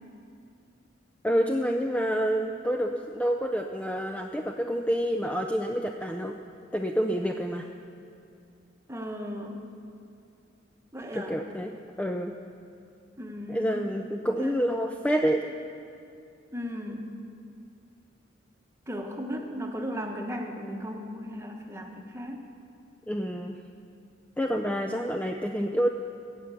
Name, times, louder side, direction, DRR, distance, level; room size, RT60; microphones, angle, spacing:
voice 1, 1.2-6.4 6.7-7.7 11.1-11.7 12.0-12.3 13.5-15.4 23.1-23.6 24.4-25.9, equal, 5° left, 3 dB, 0.4 m, -28 dB
voice 2, 8.9-9.6 10.9-11.4 13.2-14.0 14.4-14.5 16.5-17.1 18.9-22.4, equal, 15° right, 2 dB, 1.1 m, -36 dB
16.0 x 6.0 x 8.2 m, 2.5 s
head